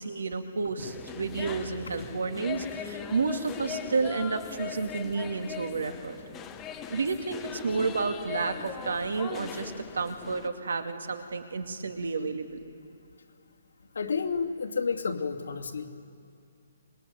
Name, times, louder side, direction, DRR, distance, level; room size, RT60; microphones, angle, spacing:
voice 1, 0.0-6.2 6.9-12.6, right 4 dB, 85° right, 6 dB, 2.4 m, -31 dB
sound 1, 0.8-10.5, left 8 dB, 10° left, 0.8 m, -40 dB
voice 2, 13.9-15.9, left 5 dB, 90° left, 1 dB, 2.5 m, -30 dB
26.0 x 21.5 x 9.4 m, 2.6 s
hypercardioid pair, 180°, 0 cm